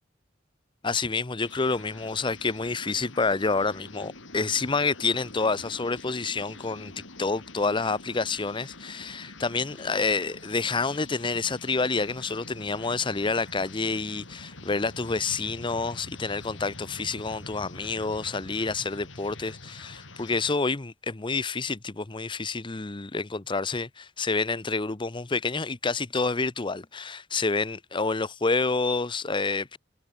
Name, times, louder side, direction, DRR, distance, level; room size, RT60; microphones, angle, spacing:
voice 1, 0.8-6.9 7.2-29.8, left 4 dB, 25° left, 0.8 m, -28 dB
sound 1, 1.4-20.5, left 2 dB, 75° left, 5.8 m, -46 dB
head